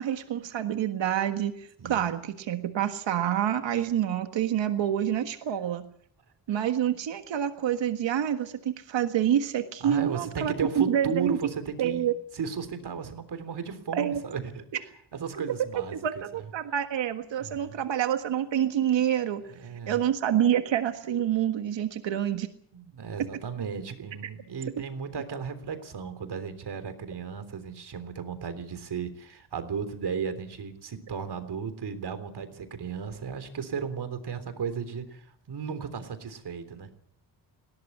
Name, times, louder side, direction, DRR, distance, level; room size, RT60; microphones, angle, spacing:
voice 1, 0.0-5.8 6.5-11.4 11.8-12.1 13.9-14.2 15.9-19.4 19.9-22.5, right 10 dB, 85° right, 7 dB, 1.6 m, -27 dB
voice 2, 1.8-2.2 9.8-14.6 15.2-16.0 16.3-16.4 17.4-17.8 19.5-20.0 22.7-36.9, right 6 dB, 65° right, 10 dB, 3.5 m, -35 dB
20.5 x 17.5 x 8.6 m, 0.66 s
cardioid pair, 105°, 43 cm